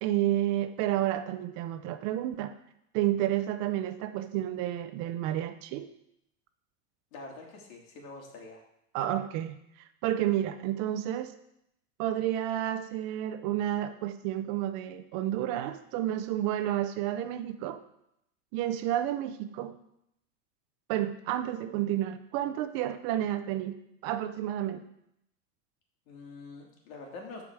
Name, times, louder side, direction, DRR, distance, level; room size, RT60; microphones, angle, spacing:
voice 1, 0.0-2.5 2.9-5.9 8.9-9.6 10.0-11.3 12.0-17.8 18.5-19.8 20.9-23.8 24.0-24.9, right 12 dB, 40° right, 11 dB, 0.6 m, -30 dB
voice 2, 7.1-8.6 26.1-27.4, left 3 dB, 80° left, 0 dB, 3.0 m, -45 dB
13.5 x 4.9 x 4.8 m, 0.78 s
supercardioid pair, 155°, 40 cm